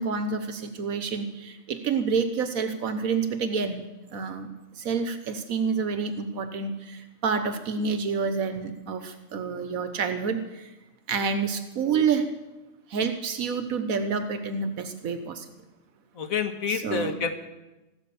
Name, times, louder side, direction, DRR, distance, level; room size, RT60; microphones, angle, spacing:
voice 1, 0.0-3.8 4.1-4.5 4.8-10.7 11.1-12.3 12.9-15.5 16.7-17.2, right 5 dB, 80° right, 9 dB, 1.4 m, -28 dB
voice 2, 16.2-17.3, left 6 dB, 75° left, 7 dB, 2.0 m, -28 dB
15.5 x 12.5 x 7.0 m, 1.1 s
omnidirectional pair, 1.5 m